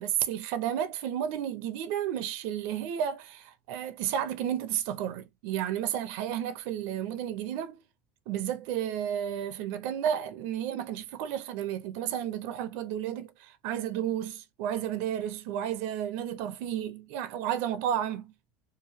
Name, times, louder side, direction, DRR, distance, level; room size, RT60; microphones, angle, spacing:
voice 1, 0.0-7.8 8.3-18.3, right 10 dB, 70° right, 0.6 m, -32 dB
2.9 x 2.6 x 2.7 m
supercardioid pair, 130°, 4 cm